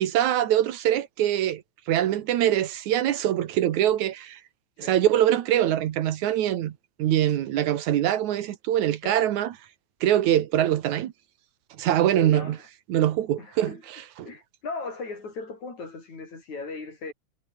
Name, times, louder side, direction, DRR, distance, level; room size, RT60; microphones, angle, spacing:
voice 1, 0.0-1.6 1.9-4.4 4.8-6.7 7.0-9.5 10.0-11.1 11.8-12.6 12.9-14.3, right 12 dB, 70° right, 2.5 m, -23 dB
voice 2, 12.2-12.6 13.4-13.8 14.2-17.1, left 3 dB, 65° left, 7.8 m, -37 dB
omnidirectional pair, 3.6 m